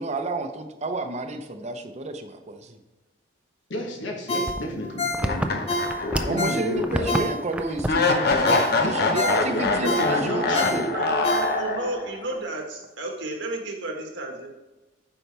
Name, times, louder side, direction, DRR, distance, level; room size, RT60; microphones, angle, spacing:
voice 1, 0.0-2.8 6.3-10.8, right 2 dB, 40° right, 7 dB, 0.7 m, -30 dB
voice 2, 3.7-7.3 8.8-10.9, equal, 85° left, 2 dB, 1.3 m, -31 dB
Ringtone, 4.3-7.7 8.1-8.2 8.5-11.9 12.3-12.4, left 2 dB, 35° left, 0.9 m, -29 dB
sound 1, 4.5-6.5 6.8-7.2 7.5-8.0 8.3-8.5 8.9-9.0 9.7-10.1, right 1 dB, 5° right, 0.4 m, -29 dB
sound 2, 5.3-6.5 6.9-7.0 7.9-12.2, left 3 dB, 60° left, 0.9 m, -24 dB
voice 3, 9.8-10.6 10.9-14.5, right 2 dB, 80° right, 1 dB, 1.5 m, -32 dB
8.7 x 5.6 x 3.4 m, 1.1 s
head